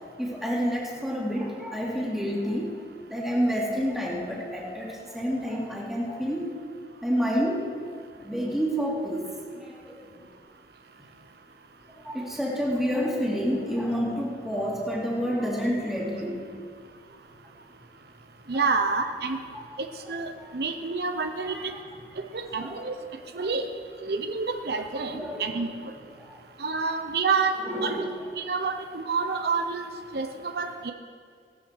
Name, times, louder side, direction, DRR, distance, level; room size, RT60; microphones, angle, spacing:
voice 1, 0.2-2.7 3.1-6.5 7.0-7.7 8.2-9.2 9.5-10.0 12.0-16.5 18.5-18.7 19.5-19.6 20.4-20.5 21.4-21.7 22.6-22.7 23.3-23.5 25.1-25.4 26.2-26.3 27.6-28.1, equal, ahead, -5 dB, 2.6 m, -29 dB
voice 2, 18.5-19.4 19.8-21.6 22.3-22.9 23.3-23.6 24.0-25.7 26.6-28.0 28.4-29.9 30.1-30.9, right 4 dB, 65° right, 6 dB, 0.8 m, -28 dB
17.5 x 12.5 x 4.6 m, 2.2 s
head